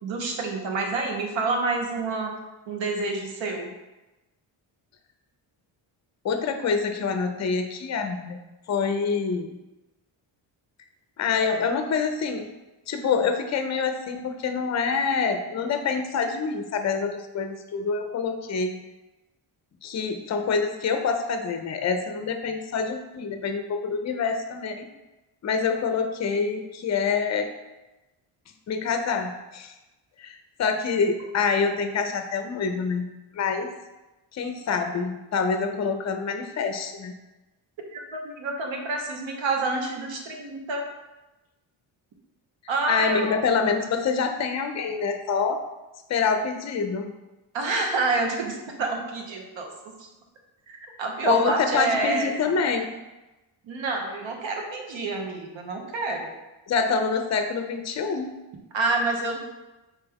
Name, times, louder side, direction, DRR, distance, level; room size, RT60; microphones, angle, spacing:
voice 1, 0.0-2.3 2.7-3.7 37.9-40.8 42.7-43.3 47.5-50.1 50.7-52.3 53.6-56.3 58.7-59.4, right 3 dB, 75° right, 2 dB, 1.0 m, -28 dB
voice 2, 6.2-8.4 8.7-9.6 11.2-12.5 12.9-18.8 19.8-24.9 25.4-27.5 28.7-29.7 30.2-33.7 34.3-37.2 42.9-45.6 46.1-47.1 51.2-53.0 56.7-58.3, left 5 dB, 35° left, 7 dB, 0.5 m, -26 dB
4.3 x 3.3 x 3.5 m, 1.1 s
cardioid pair, 100°, 46 cm